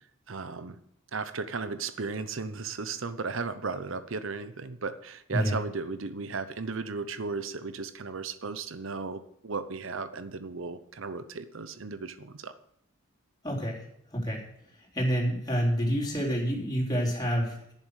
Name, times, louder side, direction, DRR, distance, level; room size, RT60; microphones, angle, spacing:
voice 1, 0.3-0.8 1.1-12.5, right 4 dB, 65° right, 12 dB, 0.8 m, -35 dB
voice 2, 13.4-13.8 14.1-14.4 14.9-17.7, equal, 20° left, -2 dB, 3.6 m, -28 dB
11.0 x 10.5 x 6.4 m, 0.73 s
head